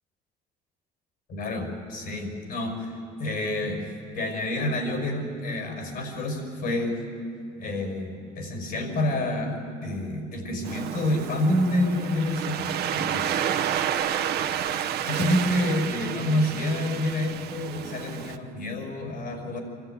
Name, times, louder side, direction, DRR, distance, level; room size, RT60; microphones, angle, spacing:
voice 1, 1.3-2.9 3.2-3.8 4.1-7.0 7.6-9.6 9.8-12.7 13.0-13.3 15.0-19.6, left 1 dB, 65° left, 4 dB, 5.7 m, -28 dB
Waves surf, 10.6-18.4, right 9 dB, 75° right, 1.0 m, -30 dB
25.5 x 13.5 x 9.4 m, 2.5 s
cardioid pair, 110°, 17 cm